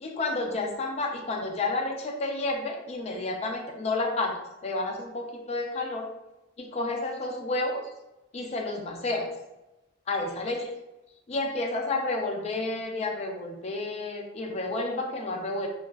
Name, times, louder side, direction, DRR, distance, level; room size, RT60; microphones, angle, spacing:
voice 1, 0.0-4.4 4.6-6.1 6.6-7.9 8.3-9.3 10.1-10.7 11.3-15.7, left 2 dB, 30° left, 2 dB, 0.3 m, -30 dB
3.3 x 2.3 x 2.2 m, 1.0 s
head